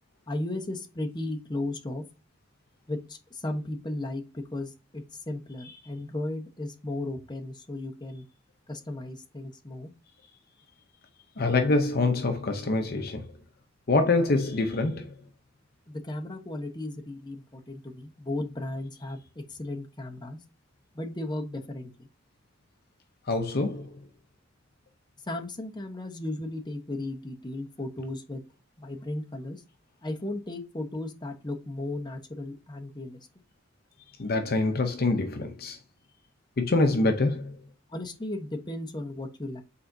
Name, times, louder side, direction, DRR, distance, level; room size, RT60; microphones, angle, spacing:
voice 1, 0.3-2.0 2.9-8.2 8.7-9.9 15.9-19.2 19.5-20.4 20.9-22.1 25.3-28.4 28.8-29.6 30.0-33.2 37.9-39.6, left 2 dB, 20° left, 1.1 m, -35 dB
voice 2, 11.4-13.3 13.9-15.2 23.3-24.1 34.2-35.8 36.6-37.6, left 2 dB, 50° left, 0.7 m, -25 dB
8.3 x 4.3 x 2.7 m
head